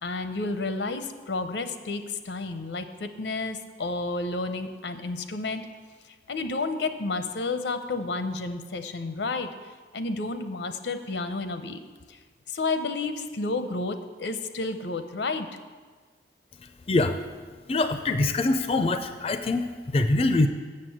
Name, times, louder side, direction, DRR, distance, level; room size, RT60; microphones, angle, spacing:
voice 1, 0.0-5.6 6.3-9.5 9.9-11.8 12.1-12.2 12.5-15.5, left 3 dB, 90° left, 9 dB, 0.7 m, -31 dB
voice 2, 17.7-20.5, left 2 dB, 35° left, 8 dB, 0.4 m, -24 dB
7.5 x 6.7 x 7.8 m, 1.5 s
head